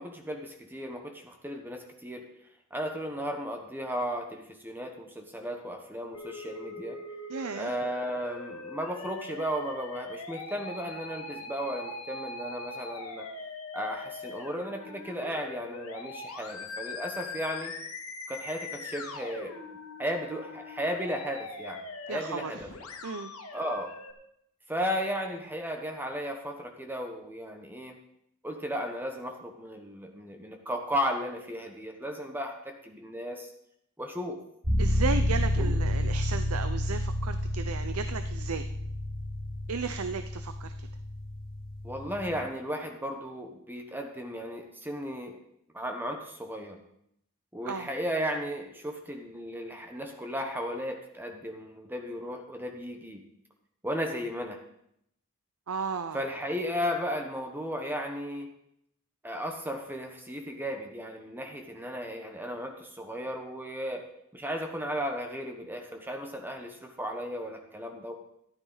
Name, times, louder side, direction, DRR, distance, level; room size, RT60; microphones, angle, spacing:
voice 1, 0.0-2.3 2.7-7.0 7.6-13.3 13.7-17.7 18.3-19.5 20.0-21.8 22.1-22.7 23.5-23.9 24.7-28.0 28.4-33.5 34.0-34.4 35.6-35.8 41.8-45.4 45.7-46.8 47.5-53.2 53.8-54.6 56.1-58.5 59.2-64.1 64.3-68.1, equal, 10° right, 3 dB, 1.1 m, -35 dB
Musical instrument, 6.1-24.1, left 3 dB, 90° left, 1.9 m, -41 dB
voice 2, 7.3-7.7 22.1-22.5 23.0-23.3 34.8-38.7 39.7-40.9 47.7-47.9 55.7-56.2, right 5 dB, 85° right, 9 dB, 0.6 m, -34 dB
sound 1, 34.6-42.4, equal, 65° right, 6.0 m, -30 dB
14.0 x 12.0 x 4.0 m, 0.74 s
head